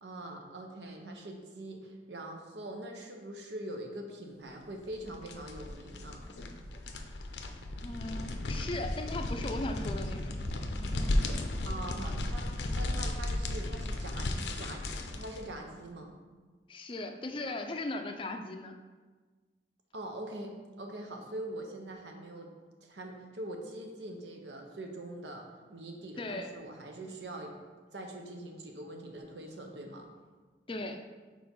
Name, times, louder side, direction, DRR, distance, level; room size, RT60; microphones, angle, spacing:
voice 1, 0.0-6.2 11.6-14.3 14.6-14.9 15.1-16.1 19.9-22.5 22.8-25.4 25.7-27.6 27.9-30.1, right 1 dB, 80° right, 3 dB, 0.9 m, -43 dB
sound 1, 4.8-15.5, left 1 dB, 80° left, 0.6 m, -35 dB
voice 2, 7.8-10.3 16.7-18.7 26.2-26.5 30.7-31.0, left 2 dB, 30° left, 5 dB, 0.4 m, -38 dB
4.8 x 4.5 x 5.3 m, 1.4 s
head